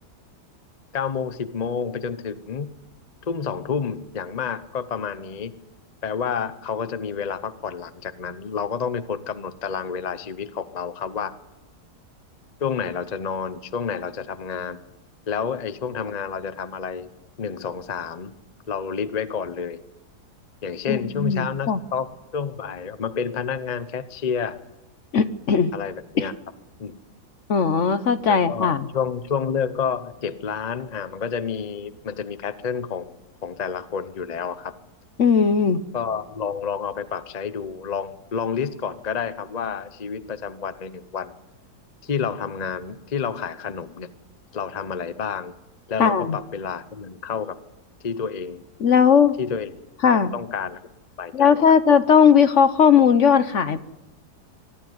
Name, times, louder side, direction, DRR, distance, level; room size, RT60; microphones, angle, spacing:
voice 1, 0.9-2.7 3.2-5.6 6.0-11.3 12.6-14.8 15.3-17.1 17.4-18.3 18.7-19.8 20.6-22.1 22.3-24.6 25.7-26.3 26.8-27.0 28.3-33.2 33.4-34.7 35.9-41.3 42.0-44.1 44.5-45.5 45.9-47.6 48.0-48.6 49.4-49.7 50.3-50.8 51.2-51.6, left 6 dB, 35° left, 13 dB, 0.7 m, -29 dB
voice 2, 20.9-21.8 25.1-25.7 26.2-26.3 27.5-28.9 35.2-35.8 46.0-46.4 48.8-49.4 50.0-50.3 51.3-53.8, left 6 dB, 55° left, 12 dB, 1.1 m, -18 dB
24.0 x 11.5 x 9.5 m, 0.98 s
omnidirectional pair, 1.8 m